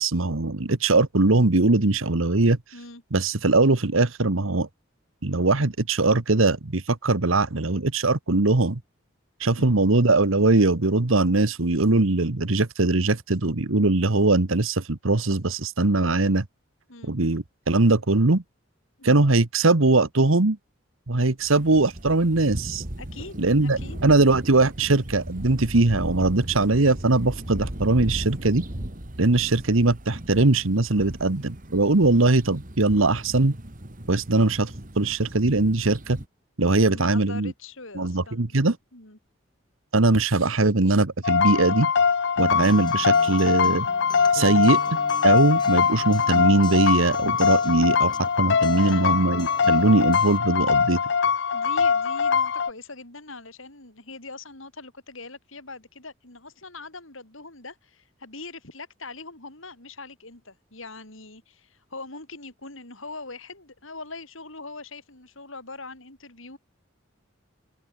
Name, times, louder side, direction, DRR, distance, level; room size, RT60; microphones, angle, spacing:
voice 1, 0.0-2.6 3.1-4.7 5.2-8.8 9.4-16.4 17.0-18.4 19.0-20.6 21.1-22.8 23.4-28.6 29.2-33.6 34.1-36.2 36.6-37.5 38.0-38.8 39.9-41.9 42.4-43.9 44.3-44.8 45.2-51.0, right 2 dB, 80° right, 1.4 m, -21 dB
sound 1, 21.4-36.3, right 1 dB, 40° right, 2.4 m, -37 dB
voice 2, 23.0-24.1 36.9-38.6 38.9-39.2 42.5-42.7 48.6-49.1 51.5-66.6, left 3 dB, 75° left, 6.6 m, -42 dB
sound 2, 41.2-52.7, left 6 dB, 55° left, 0.6 m, -22 dB
Acoustic guitar, 42.4-50.4, left 2 dB, 20° left, 3.1 m, -41 dB
open air
head